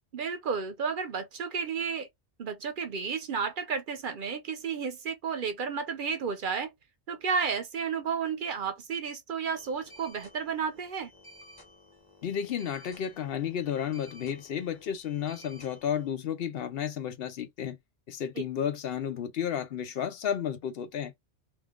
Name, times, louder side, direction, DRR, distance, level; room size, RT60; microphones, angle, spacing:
voice 1, 0.1-2.1 2.4-6.7 7.1-11.1, right 6 dB, 60° right, 0.7 m, -32 dB
sound 1, 9.6-16.1, left 1 dB, 20° left, 1.0 m, -54 dB
voice 2, 12.2-17.8 18.1-21.1, left 9 dB, 70° left, 0.8 m, -32 dB
2.6 x 2.4 x 3.5 m
omnidirectional pair, 1.1 m